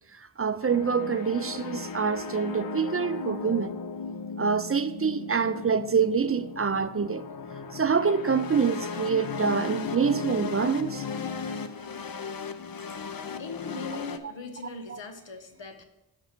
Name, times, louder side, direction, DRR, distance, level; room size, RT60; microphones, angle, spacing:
voice 1, 0.1-3.7 4.4-7.3 7.7-11.1 14.9-15.0, right 6 dB, 35° right, 0.4 m, -26 dB
sound 1, 0.6-14.2, left 5 dB, 55° left, 0.6 m, -36 dB
voice 2, 13.4-15.8, left 3 dB, 90° left, 1.0 m, -39 dB
8.1 x 6.1 x 4.4 m
wide cardioid pair, 75°, 43 cm